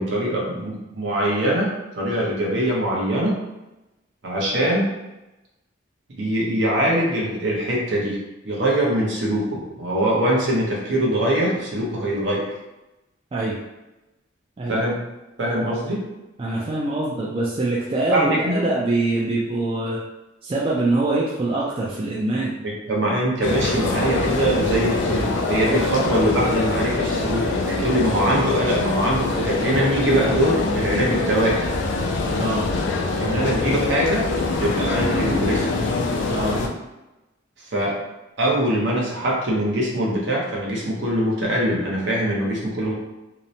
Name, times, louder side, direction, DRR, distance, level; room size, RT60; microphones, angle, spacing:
voice 1, 0.0-3.4 4.2-4.9 6.1-8.2 8.4-12.5 14.7-15.0 15.4-16.0 18.1-18.7 22.6-31.7 33.2-34.2 34.6-35.7 37.7-38.0 38.4-42.9, right 1 dB, 65° right, -3 dB, 0.7 m, -22 dB
voice 2, 16.4-20.0 20.4-22.5 32.4-32.7 36.3-36.6, right 2 dB, 30° right, -5 dB, 0.3 m, -24 dB
sound 1, 23.4-36.7, left 3 dB, 65° left, 0.3 m, -24 dB
2.8 x 2.0 x 2.6 m, 1.0 s
head